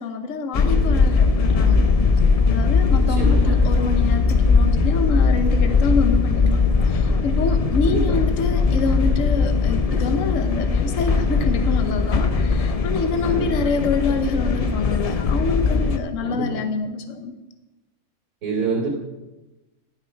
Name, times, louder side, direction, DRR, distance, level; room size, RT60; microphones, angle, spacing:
voice 1, 0.0-1.8 2.5-17.3, left 4 dB, 65° left, 8 dB, 1.2 m, -26 dB
sound 1, 0.5-16.0, left 4 dB, 45° left, 0.4 m, -19 dB
voice 2, 3.0-3.6 7.9-8.2 13.3-13.6 16.2-16.6 18.4-18.9, right 4 dB, 75° right, -10 dB, 3.5 m, -27 dB
12.0 x 6.7 x 4.6 m, 1.1 s
omnidirectional pair, 1.5 m